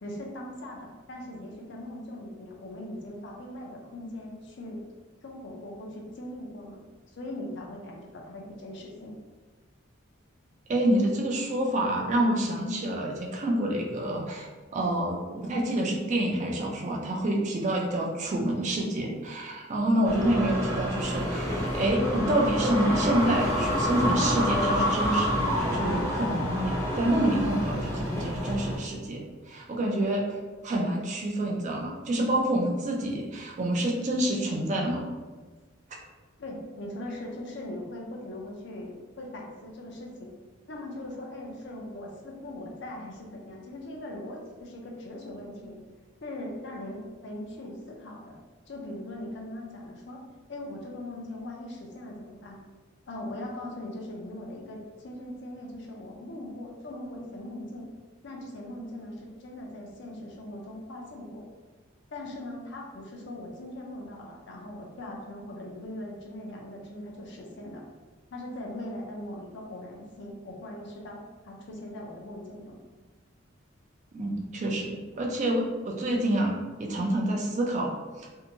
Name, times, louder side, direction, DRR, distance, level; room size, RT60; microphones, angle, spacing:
voice 1, 0.0-4.8 5.2-6.8 7.1-9.2 36.4-40.3 40.7-45.8 46.2-48.4 48.7-50.2 50.5-52.6 53.1-57.9 58.2-61.5 62.1-67.8 68.3-72.8, left 1 dB, 60° left, -1 dB, 0.5 m, -40 dB
voice 2, 10.7-30.3 30.6-35.1 74.1-78.3, right 1 dB, 35° right, 0 dB, 0.4 m, -27 dB
sound 1, 20.0-28.8, equal, 15° left, 0.6 m, -28 dB
2.7 x 2.2 x 2.7 m, 1.3 s
head